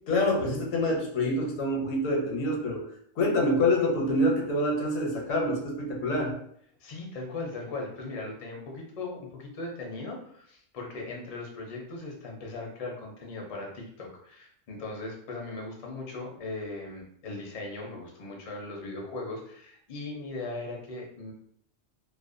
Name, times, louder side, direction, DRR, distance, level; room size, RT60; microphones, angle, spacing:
voice 1, 0.1-2.8 3.2-6.4, left 1 dB, 80° left, 0 dB, 1.0 m, -26 dB
voice 2, 6.8-21.3, left 2 dB, 50° left, -1 dB, 0.4 m, -38 dB
2.5 x 2.1 x 2.5 m, 0.66 s
omnidirectional pair, 1.3 m